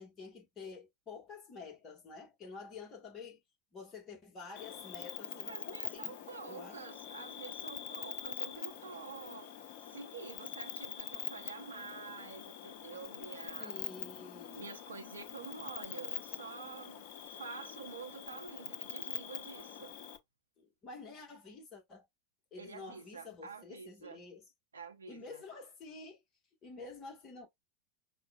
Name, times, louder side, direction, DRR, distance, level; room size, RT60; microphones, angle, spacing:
voice 1, 0.0-3.4 3.7-6.1 6.5-6.8 13.6-14.7 20.6-22.1 22.5-24.4 25.1-26.2 26.6-27.5, left 4 dB, 25° left, 1.4 m, -49 dB
Cricket, 4.6-20.2, left 9 dB, 45° left, 0.8 m, -44 dB
voice 2, 5.5-13.8 14.5-20.0 22.6-24.2 24.7-25.4, right 5 dB, 70° right, 0.8 m, -48 dB
5.7 x 2.3 x 2.3 m
figure-of-eight pair, 90°, 0 cm